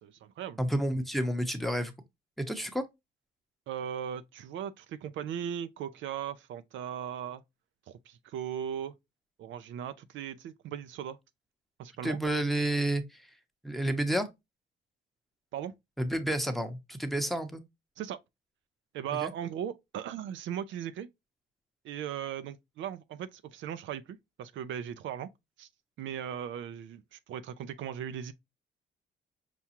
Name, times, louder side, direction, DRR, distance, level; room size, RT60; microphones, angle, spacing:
voice 1, 0.0-0.6 3.7-7.4 7.9-8.9 9.4-11.2 11.8-12.2 15.5-15.7 18.0-18.2 18.9-21.1 21.8-25.3 25.6-25.7 26.0-28.3, right 9 dB, 75° right, 0.4 m, -38 dB
voice 2, 0.6-1.9 2.4-2.8 12.0-13.3 13.6-14.3 16.0-17.6 19.1-19.3, right 1 dB, ahead, 0.8 m, -30 dB
5.9 x 2.3 x 2.8 m
cardioid pair, 90°, 20 cm